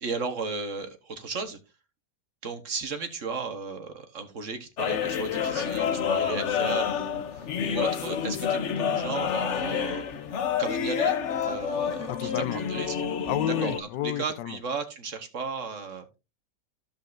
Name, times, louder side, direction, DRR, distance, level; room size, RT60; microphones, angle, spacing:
voice 1, 0.0-1.6 2.4-10.0 10.6-12.9 13.6-16.1, right 4 dB, 50° right, 1.4 m, -35 dB
sound 1, 4.8-13.8, left 7 dB, 55° left, 0.9 m, -28 dB
voice 2, 12.1-12.6 13.2-14.6, left 13 dB, 90° left, 1.2 m, -30 dB
15.0 x 5.4 x 2.5 m
omnidirectional pair, 1.8 m